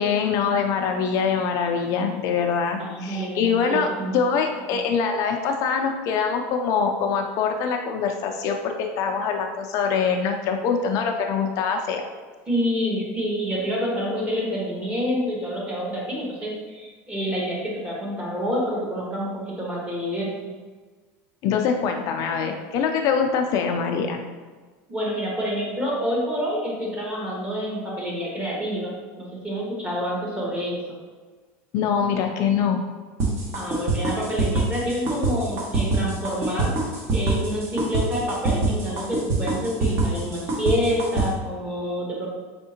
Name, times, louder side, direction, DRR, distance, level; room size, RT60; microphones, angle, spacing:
voice 1, 0.0-12.0 21.4-24.2 31.7-32.8, left 6 dB, 50° left, 4 dB, 0.4 m, -24 dB
voice 2, 2.8-4.2 12.5-20.3 24.9-31.0 33.5-36.7 37.1-42.3, equal, 15° right, -4 dB, 1.3 m, -28 dB
sound 1, 33.2-41.3, right 3 dB, 35° right, 1.1 m, -24 dB
4.2 x 3.6 x 2.8 m, 1.4 s
supercardioid pair, 135°, 7 cm